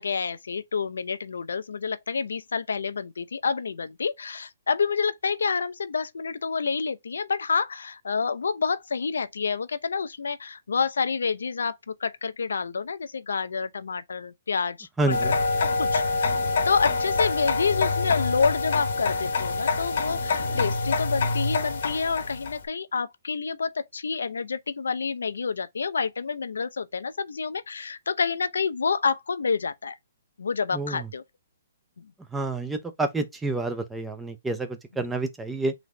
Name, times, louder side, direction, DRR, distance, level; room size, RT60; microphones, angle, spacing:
voice 1, 0.0-15.3 15.6-16.4 16.6-30.0 30.4-31.2 32.0-32.1, left 5 dB, 85° left, 0.5 m, -28 dB
voice 2, 15.0-15.4 30.7-31.1 32.3-35.7, right 2 dB, 5° right, 0.6 m, -29 dB
sound 1, 15.1-22.6, left 3 dB, 60° left, 1.0 m, -26 dB
4.0 x 3.0 x 3.2 m
hypercardioid pair, 155°, 0 cm